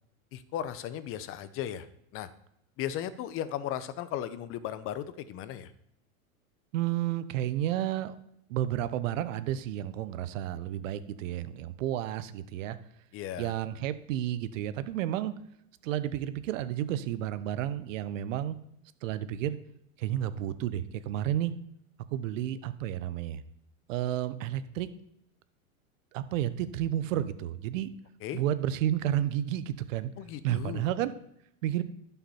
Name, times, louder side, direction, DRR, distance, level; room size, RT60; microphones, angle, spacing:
voice 1, 0.3-1.9 2.1-2.3 2.8-5.7 13.1-13.5 28.2-28.4 30.2-30.9, left 11 dB, 30° left, 14 dB, 0.7 m, -36 dB
voice 2, 6.7-8.1 8.5-12.8 13.4-15.3 15.8-18.6 19.0-19.6 20.0-21.5 22.1-23.4 23.9-24.9 26.1-27.9 28.3-30.1 30.4-31.1 31.6-31.8, right 12 dB, 65° right, 14 dB, 0.9 m, -31 dB
11.5 x 5.8 x 4.3 m, 0.76 s
hypercardioid pair, 120°, 42 cm